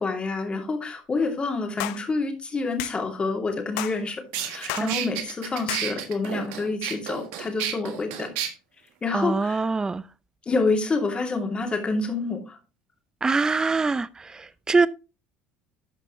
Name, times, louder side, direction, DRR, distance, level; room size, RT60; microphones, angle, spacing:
voice 1, 0.0-8.3 9.0-9.6 10.5-12.6, left 3 dB, 25° left, 2.5 m, -28 dB
sound 1, 1.8-2.0 2.8-3.0 3.8-4.0 4.7-4.9 5.7-5.9, left 17 dB, 80° left, 0.5 m, -31 dB
sound 2, 3.9-4.0 4.3-8.5, right 10 dB, 80° right, 1.5 m, -31 dB
voice 2, 9.1-10.0 13.2-14.9, right 4 dB, 15° right, 0.5 m, -24 dB
12.5 x 5.2 x 3.1 m
supercardioid pair, 95°, 4 cm